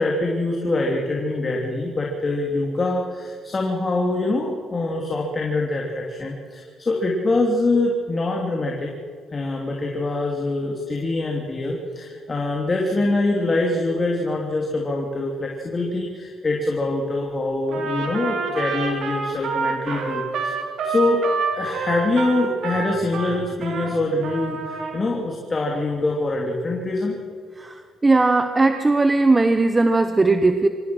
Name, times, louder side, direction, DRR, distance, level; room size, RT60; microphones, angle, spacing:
voice 1, 0.0-8.9 9.3-20.6 20.8-21.3 21.5-27.2, left 2 dB, 30° left, 0 dB, 3.0 m, -24 dB
Trumpet, 17.7-23.9 24.2-25.0, right 4 dB, 75° right, 3.7 m, -27 dB
voice 2, 28.0-30.7, right 3 dB, 20° right, 8 dB, 1.0 m, -17 dB
25.0 x 17.0 x 6.2 m, 2.1 s
cardioid pair, 90°, 0 cm